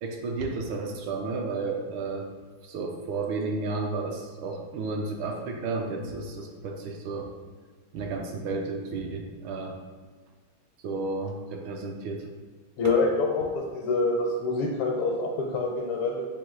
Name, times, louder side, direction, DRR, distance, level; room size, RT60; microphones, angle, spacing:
voice 1, 0.0-2.3 2.6-7.3 7.9-9.8 10.8-12.3 12.8-12.9, right 3 dB, 75° right, 2 dB, 1.3 m, -32 dB
voice 2, 12.8-16.3, left 3 dB, 80° left, -2 dB, 1.5 m, -26 dB
5.2 x 2.6 x 3.7 m, 1.5 s
omnidirectional pair, 2.4 m